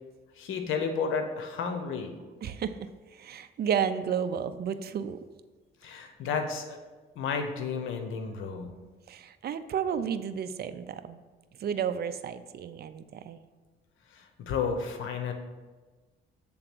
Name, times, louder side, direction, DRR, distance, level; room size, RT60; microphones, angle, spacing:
voice 1, 0.4-2.1 5.8-6.8 7.2-8.7 14.2-15.3, left 5 dB, 85° left, 6 dB, 0.9 m, -32 dB
voice 2, 2.4-5.2 9.1-11.2 11.6-13.4, right 8 dB, 55° right, 11 dB, 0.5 m, -32 dB
7.8 x 3.7 x 6.0 m, 1.3 s
cardioid pair, 90°, 20 cm